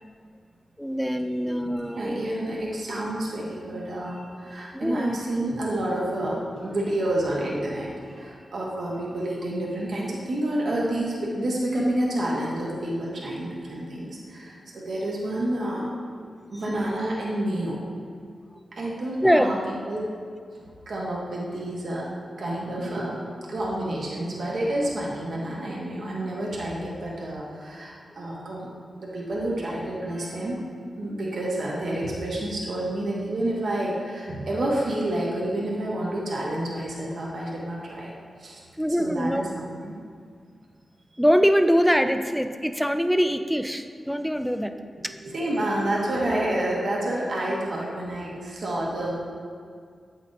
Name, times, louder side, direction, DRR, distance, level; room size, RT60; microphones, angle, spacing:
voice 1, 0.8-2.3 4.7-5.2 19.2-19.5 38.8-39.4 41.2-44.7 45.0-45.1, equal, ahead, 8 dB, 0.4 m, -23 dB
voice 2, 1.7-15.8 16.5-17.8 18.7-19.6 19.9-20.0 20.9-22.1 22.4-23.2 23.5-28.7 29.0-30.6 31.0-38.1 38.4-38.6 39.0-40.0 45.1-49.2, right 1 dB, 70° right, -4 dB, 1.2 m, -29 dB
8.2 x 5.8 x 2.6 m, 2.1 s
cardioid pair, 60°, 0 cm